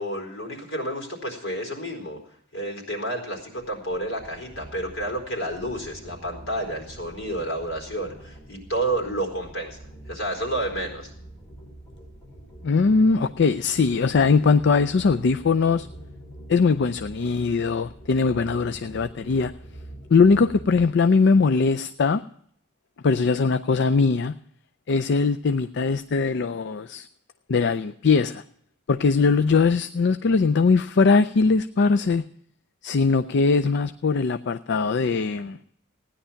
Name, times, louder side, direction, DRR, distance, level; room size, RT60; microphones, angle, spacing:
voice 1, 0.0-2.2 2.5-9.8 10.1-11.1, right 1 dB, 80° left, 2 dB, 4.2 m, -30 dB
sound 1, 3.6-21.0, right 1 dB, 15° left, 2.6 m, -45 dB
voice 2, 12.6-15.9 16.5-19.5 20.1-22.2 23.0-24.3 24.9-27.1 27.5-28.4 28.9-32.2 32.8-35.6, left 4 dB, 60° left, 10 dB, 0.4 m, -21 dB
16.0 x 10.0 x 5.7 m, 0.67 s
head